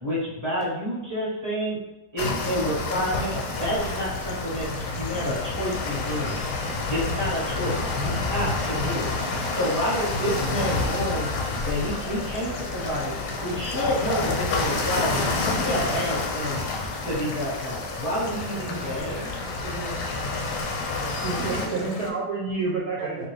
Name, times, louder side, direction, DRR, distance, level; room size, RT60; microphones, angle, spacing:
voice 1, 0.0-1.8 2.1-4.7 4.9-6.4 6.9-11.3 11.6-13.1 13.4-16.6 17.0-19.2, equal, 15° right, -8 dB, 0.9 m, -29 dB
sound 1, 2.2-21.7, left 3 dB, 85° left, 1.1 m, -29 dB
sound 2, 3.2-22.1, left 3 dB, 70° left, 0.8 m, -38 dB
sound 3, 6.2-16.4, left 3 dB, 10° left, 0.5 m, -44 dB
voice 2, 18.5-20.2 20.8-21.8 23.0-23.3, right 2 dB, 65° right, -4 dB, 0.9 m, -39 dB
voice 3, 21.2-23.3, right 4 dB, 85° right, -3 dB, 1.2 m, -28 dB
3.0 x 2.6 x 3.2 m, 1.0 s
omnidirectional pair, 1.6 m